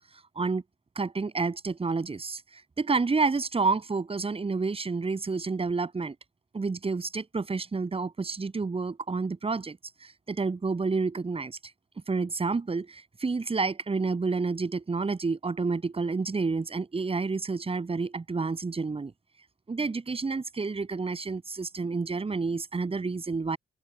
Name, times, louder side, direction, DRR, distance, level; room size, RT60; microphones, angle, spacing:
voice 1, 1.0-2.4 2.8-6.2 6.5-9.8 10.0-11.6 12.1-19.1 19.7-23.6, right 4 dB, 30° right, 7.2 m, -29 dB
open air
cardioid pair, 90°, 20 cm